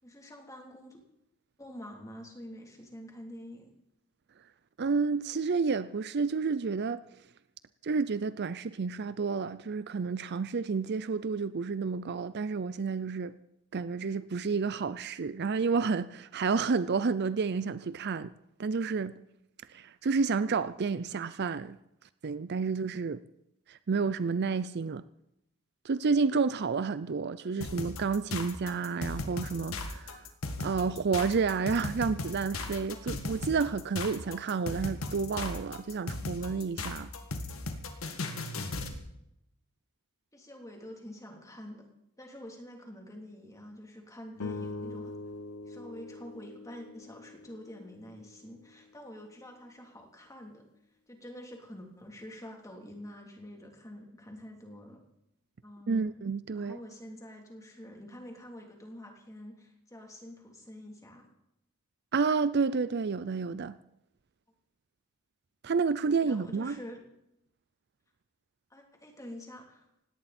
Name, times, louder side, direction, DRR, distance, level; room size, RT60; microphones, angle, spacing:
voice 1, 0.0-1.0 1.6-3.7 27.4-27.7 40.3-41.8 42.2-45.2 45.6-50.7 51.1-55.0 55.6-56.1 56.5-61.3 66.0-67.0 68.7-69.9, equal, 15° left, 3.2 m, -47 dB
voice 2, 4.8-7.0 7.8-13.3 13.7-18.3 18.6-19.2 19.7-21.8 22.2-23.2 23.7-25.0 25.8-30.3 30.6-37.1 55.9-56.8 62.1-63.8 65.6-66.8, right 5 dB, 50° right, 0.5 m, -30 dB
sound 1, 27.6-39.0, left 2 dB, 65° left, 2.0 m, -37 dB
sound 2, 44.4-48.9, left 3 dB, 85° left, 1.0 m, -43 dB
18.5 x 17.0 x 4.3 m
head